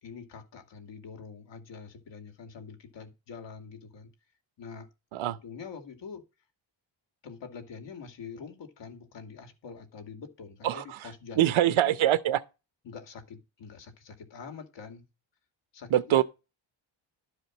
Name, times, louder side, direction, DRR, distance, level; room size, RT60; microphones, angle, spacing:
voice 1, 0.0-4.1 4.6-4.9 5.3-6.2 7.2-12.0 12.8-15.0 15.7-16.2, left 5 dB, 65° left, 2.6 m, -45 dB
voice 2, 11.4-12.4 15.9-16.2, right 12 dB, 85° right, 1.0 m, -23 dB
12.5 x 5.1 x 6.2 m
wide cardioid pair, 155°, 47 cm